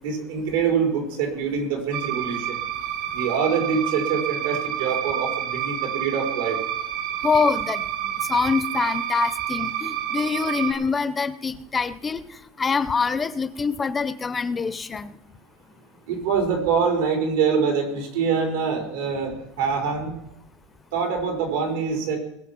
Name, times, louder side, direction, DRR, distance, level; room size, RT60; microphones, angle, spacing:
voice 1, 0.0-2.6 3.1-6.6 16.1-20.2 20.9-22.2, right 6 dB, 90° right, 2 dB, 5.1 m, -25 dB
sound 1, 1.9-10.7, right 11 dB, 60° right, 2.2 m, -29 dB
voice 2, 7.2-15.2, left 5 dB, 15° left, 15 dB, 0.6 m, -25 dB
21.0 x 7.6 x 6.0 m, 0.89 s
supercardioid pair, 145°, 0 cm